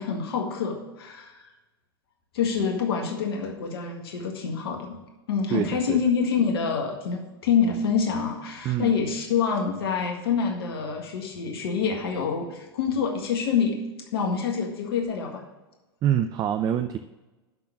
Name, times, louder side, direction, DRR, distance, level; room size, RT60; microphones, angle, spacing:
voice 1, 0.0-1.5 2.3-5.0 5.3-13.8 14.1-15.4, left 6 dB, 70° left, 2 dB, 1.8 m, -26 dB
voice 2, 5.5-6.0 8.6-8.9 16.0-17.0, right 10 dB, 30° right, 9 dB, 0.5 m, -25 dB
12.0 x 4.0 x 7.2 m, 1.1 s
hypercardioid pair, 100°, 13 cm